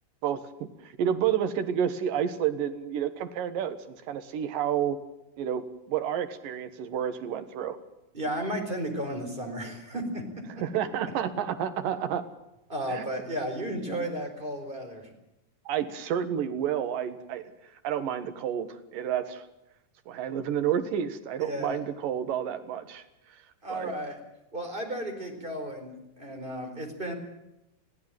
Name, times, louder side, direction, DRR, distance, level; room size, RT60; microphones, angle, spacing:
voice 1, 0.2-5.0 5.4-7.8 10.6-12.3 12.9-13.0 15.7-17.4 17.8-19.4 20.1-23.0 23.7-23.9, right 9 dB, 85° right, 8 dB, 3.1 m, -30 dB
voice 2, 8.1-10.2 12.7-15.1 21.4-21.8 23.6-24.2 24.5-27.1, right 1 dB, 15° right, 4 dB, 4.2 m, -33 dB
21.5 x 15.5 x 9.1 m, 0.89 s
omnidirectional pair, 3.8 m